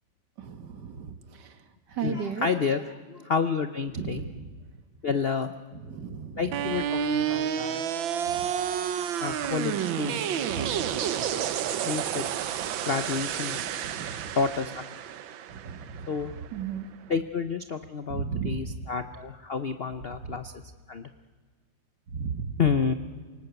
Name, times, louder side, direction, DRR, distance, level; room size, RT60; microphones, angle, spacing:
voice 1, 0.4-1.5 1.9-2.5 3.9-4.5 5.8-6.6 8.3-8.5 10.5-10.9 14.0-14.3 15.5-16.9 18.1-18.8 20.2-20.4 22.1-22.5, right 6 dB, 65° right, 1.9 m, -35 dB
voice 2, 2.0-4.2 5.0-5.5 6.4-7.8 9.2-10.5 11.8-12.3 12.9-13.6 14.3-14.8 16.1-16.3 17.1-20.5 20.9-21.1 22.6-22.9, left 5 dB, 55° left, 0.6 m, -29 dB
sound 1, 6.5-16.6, right 9 dB, 85° right, 1.7 m, -30 dB
28.0 x 18.5 x 8.1 m
omnidirectional pair, 2.0 m